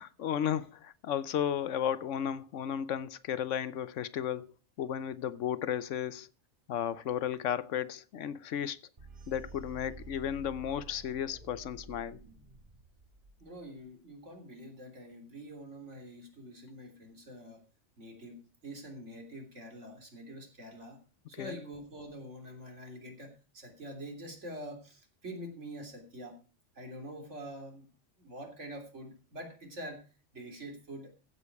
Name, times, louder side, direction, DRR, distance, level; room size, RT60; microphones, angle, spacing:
voice 1, 0.0-4.5 4.8-6.3 6.7-8.8 9.3-12.2 21.3-21.6, left 9 dB, 90° left, 1.1 m, -34 dB
sound 1, 9.0-13.9, right 4 dB, 45° right, 2.3 m, -50 dB
voice 2, 13.4-17.6 18.0-18.4 18.6-21.0 21.3-26.4 26.7-27.8 28.2-30.0 30.3-31.1, right 1 dB, 75° right, 3.5 m, -45 dB
15.0 x 8.4 x 4.7 m
omnidirectional pair, 1.2 m